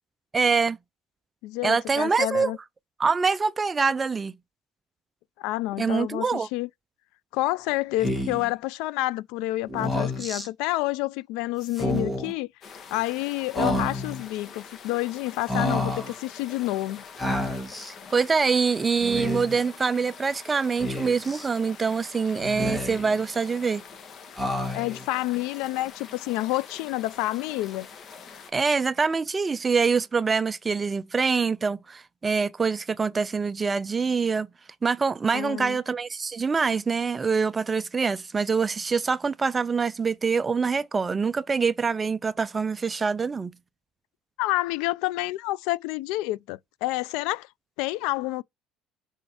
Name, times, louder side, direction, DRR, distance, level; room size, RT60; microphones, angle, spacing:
voice 1, 0.3-0.8 1.6-2.5 3.0-4.3 5.8-6.5 18.1-23.8 28.5-34.5 34.8-43.6, right 5 dB, 20° right, 0.5 m, -25 dB
voice 2, 1.4-2.6 5.4-6.7 7.3-12.5 12.9-17.0 24.7-27.9 35.3-35.8 44.4-47.5 47.8-48.4, left 18 dB, 80° left, 0.4 m, -29 dB
Speech, 8.0-8.5 9.7-10.5 11.7-12.3 13.5-14.2 15.5-16.1 17.2-17.9 19.0-19.6 20.8-21.5 22.4-23.2 24.4-25.1, left 1 dB, 10° left, 1.9 m, -29 dB
sound 1, 12.6-28.5, left 6 dB, 45° left, 1.6 m, -45 dB
6.3 x 4.4 x 4.9 m
cardioid pair, 115°, 0 cm